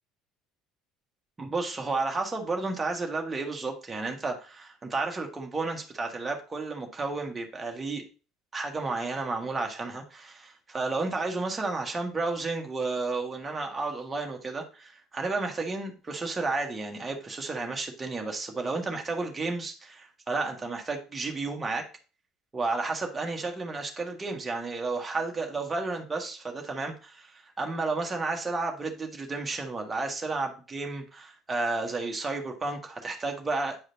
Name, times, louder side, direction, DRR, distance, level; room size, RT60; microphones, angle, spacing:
voice 1, 1.4-8.0 8.5-21.9 22.5-33.8, right 3 dB, 20° right, 2 dB, 1.6 m, -32 dB
8.9 x 4.8 x 2.8 m, 0.35 s
figure-of-eight pair, 60°, 0 cm